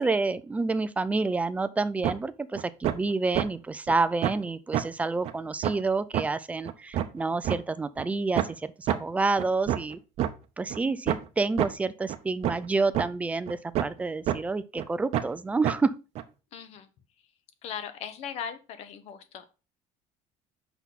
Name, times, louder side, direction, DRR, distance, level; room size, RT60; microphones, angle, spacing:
voice 1, 0.0-10.0 10.6-15.9, right 3 dB, 10° right, 0.3 m, -28 dB
sound 1, 2.0-2.1 2.5-2.9 3.3-3.4 3.9-4.0 4.2-4.4 4.7-4.8 5.2-5.3 5.6-5.7 6.1-6.2 6.6-7.6 8.0-8.1 8.4-8.5 8.9-9.0 9.4-10.3 10.7-10.8 11.1-11.2 11.6-11.7 12.1-12.2 12.4-12.6 12.9-13.1 13.5-14.0 14.3-14.4 14.8-14.9 15.1-15.3 15.6-15.7 16.1-16.2, right 12 dB, 50° right, 0.7 m, -27 dB
voice 2, 16.5-16.9 17.6-19.5, left 8 dB, 50° left, 1.0 m, -38 dB
6.3 x 5.5 x 4.0 m
cardioid pair, 175°, 14 cm